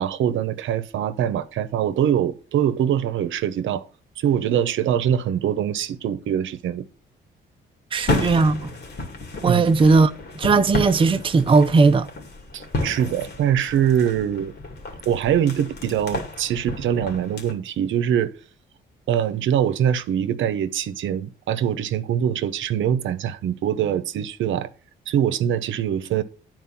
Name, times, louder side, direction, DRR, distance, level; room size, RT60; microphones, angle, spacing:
voice 1, 0.0-3.8 4.2-6.8 8.0-8.1 9.4-9.8 12.5-14.5 15.1-18.3 19.1-24.7 25.1-26.2, right 9 dB, 75° right, 0.9 m, -23 dB
sound 1, 7.9-17.5, left 2 dB, 55° left, 2.5 m, -32 dB
voice 2, 7.9-8.7 9.4-12.1, right 4 dB, 25° right, 0.6 m, -18 dB
9.6 x 4.6 x 5.9 m
cardioid pair, 90°, 20 cm